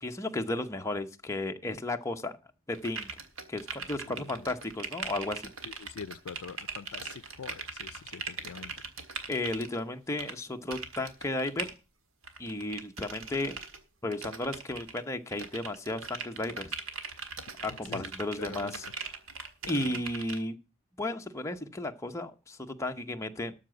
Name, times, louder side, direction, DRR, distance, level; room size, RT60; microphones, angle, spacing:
voice 1, 0.0-2.3 2.7-3.1 3.5-5.5 9.3-11.7 12.4-13.6 14.0-16.8 17.6-19.1 19.7-20.6 21.0-23.5, left 2 dB, 15° left, 0.8 m, -34 dB
sound 1, 2.7-9.8 10.2-10.3 10.7-11.7 12.2-13.8 14.1-15.0 15.3-20.4, right 5 dB, 65° right, 1.6 m, -40 dB
voice 2, 5.6-8.7 17.9-18.0 18.4-18.8 19.6-20.0, left 6 dB, 85° left, 0.5 m, -44 dB
13.0 x 4.8 x 7.8 m
head